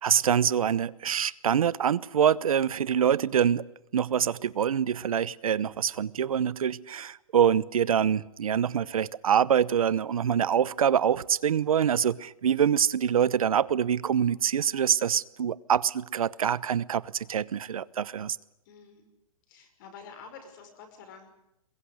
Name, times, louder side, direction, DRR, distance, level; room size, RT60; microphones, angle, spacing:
voice 1, 0.0-3.6 3.9-18.4, right 8 dB, 80° right, 0.9 m, -25 dB
voice 2, 18.7-19.1 19.5-21.3, left 6 dB, 35° left, 5.7 m, -48 dB
22.5 x 22.0 x 9.7 m
hypercardioid pair, 165°, 18 cm